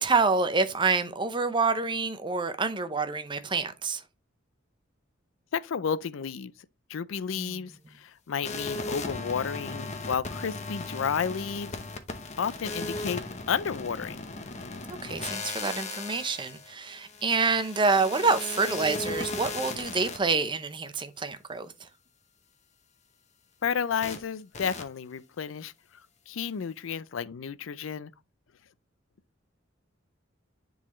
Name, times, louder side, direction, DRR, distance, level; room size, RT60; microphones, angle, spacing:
voice 1, 0.0-4.0 7.4-7.6 14.9-21.7, right 4 dB, 25° right, 0.6 m, -27 dB
voice 2, 5.5-6.5 6.9-11.7 12.4-14.2 23.6-25.7 26.3-28.1, left 7 dB, 75° left, 0.4 m, -32 dB
sound 1, 8.4-20.2 24.0-24.2 24.5-24.8, left 3 dB, 35° left, 0.8 m, -37 dB
9.9 x 4.0 x 3.0 m
head